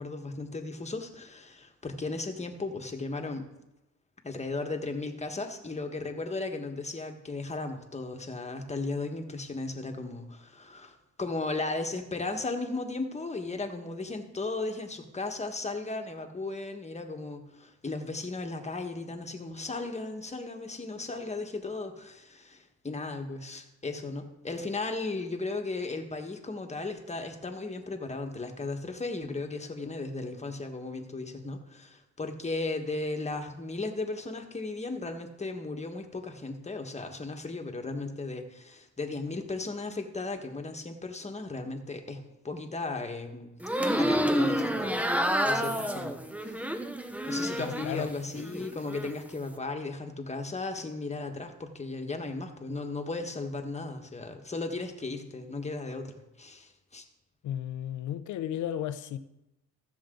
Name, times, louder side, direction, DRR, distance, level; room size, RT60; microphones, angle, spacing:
voice 1, 0.0-3.5 4.2-43.5 43.9-45.0 45.4-46.6 47.3-57.0, left 3 dB, 20° left, 1.5 m, -36 dB
sound 1, 43.6-48.0 48.4-49.1, equal, 5° right, 0.8 m, -29 dB
voice 2, 47.6-48.1 57.4-59.2, left 10 dB, 75° left, 0.7 m, -34 dB
15.0 x 7.2 x 3.9 m
cardioid pair, 90°, 30 cm